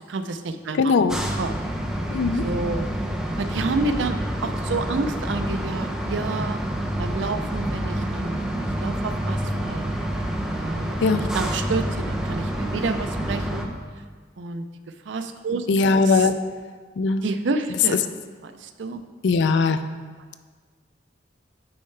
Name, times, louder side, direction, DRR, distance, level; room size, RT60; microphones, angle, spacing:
voice 1, 0.0-1.0 1.4-1.5 2.4-2.9 3.3-4.2 4.4-6.6 7.0-9.9 10.5-13.7 14.4-14.7 15.1-15.7 16.0-16.3 17.2-18.1 18.4-19.0, right 3 dB, 80° right, 9 dB, 0.5 m, -29 dB
voice 2, 0.7-1.2 2.1-2.4 11.0-11.2 15.7-16.3 17.0-17.2 19.2-19.8, left 4 dB, 70° left, 10 dB, 0.4 m, -19 dB
sound 1, 1.1-13.7, right 1 dB, 5° right, 0.5 m, -28 dB
8.6 x 5.5 x 3.2 m, 1.5 s
head